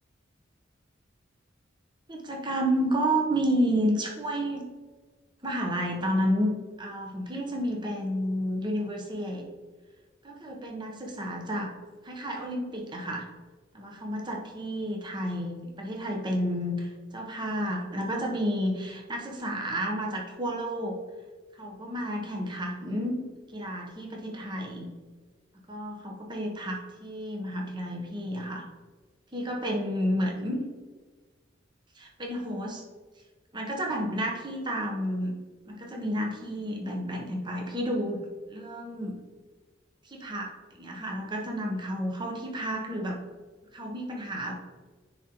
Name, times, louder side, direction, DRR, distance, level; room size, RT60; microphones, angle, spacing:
voice 1, 2.1-4.6 5.4-6.5 6.8-9.4 10.2-11.7 12.0-13.3 13.7-21.0 21.6-23.2 23.5-24.9 25.7-28.6 29.3-30.6 32.0-32.8 33.5-35.3 35.7-38.2 38.5-39.2 40.0-40.5 40.8-43.2 43.7-44.5, equal, 25° right, 0 dB, 0.8 m, -31 dB
9.8 x 3.7 x 2.9 m, 1.4 s
head